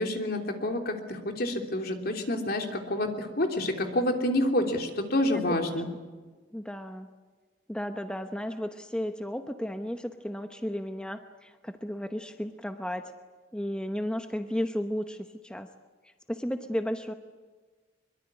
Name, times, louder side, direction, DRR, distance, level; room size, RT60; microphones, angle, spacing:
voice 1, 0.0-5.9, left 1 dB, 55° left, 4 dB, 3.2 m, -28 dB
voice 2, 6.5-7.1 7.7-13.1 13.5-15.7 16.0-17.1, equal, 5° left, 7 dB, 0.9 m, -34 dB
23.5 x 23.0 x 9.8 m, 1.4 s
head